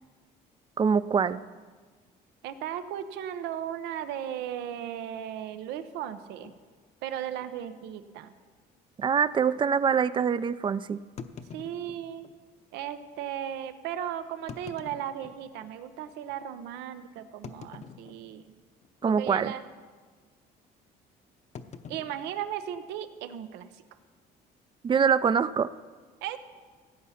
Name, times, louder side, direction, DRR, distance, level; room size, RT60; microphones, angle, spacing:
voice 1, 0.8-1.4 9.0-11.0 19.0-19.5 24.8-25.7, right 6 dB, 30° right, 16 dB, 0.4 m, -24 dB
voice 2, 2.4-6.5 7.0-8.3 11.5-12.3 12.7-18.5 19.0-19.6 21.9-23.8 26.2-26.4, right 10 dB, 90° right, 11 dB, 0.8 m, -36 dB
sound 1, 6.4-6.6 7.4-7.5 7.8-7.9 8.5-8.6 11.2-12.4 13.2-13.3 14.3-15.8 16.3-16.4 17.4-18.5 18.8-19.2 19.4-19.7 21.5-23.2, left 6 dB, 40° left, 0.8 m, -46 dB
16.0 x 8.2 x 5.7 m, 1.5 s
cardioid pair, 110°, 17 cm